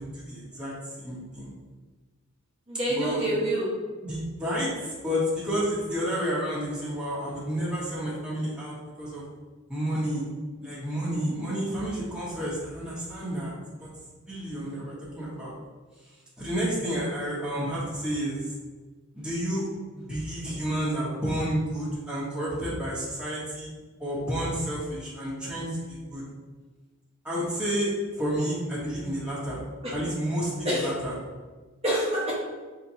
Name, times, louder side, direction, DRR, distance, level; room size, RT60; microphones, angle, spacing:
voice 1, 0.0-1.5 2.9-3.2 4.0-9.2 9.7-10.2 10.6-13.5 13.8-13.9 14.3-15.5 16.4-18.4 19.1-19.6 19.9-23.7 24.0-26.2 27.2-29.6 29.9-31.1, equal, 5° right, -8 dB, 1.1 m, -30 dB
voice 2, 2.7-3.7 29.8-29.9 30.6-30.9 31.8-32.3, equal, 30° right, -7 dB, 1.0 m, -26 dB
5.5 x 2.9 x 2.7 m, 1.3 s
head